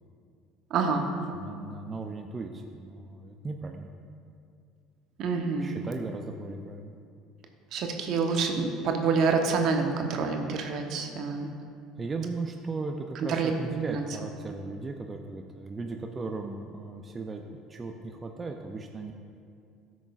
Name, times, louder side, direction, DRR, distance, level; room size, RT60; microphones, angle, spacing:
voice 1, 0.7-1.1 5.2-5.7 7.7-11.5 13.3-13.5 13.9-14.0, right 4 dB, 60° right, 3 dB, 0.9 m, -27 dB
voice 2, 1.3-3.9 5.6-7.0 12.0-19.1, right 3 dB, 25° right, 3 dB, 0.5 m, -37 dB
14.0 x 6.1 x 2.5 m, 2.4 s
hypercardioid pair, 70°, 0 cm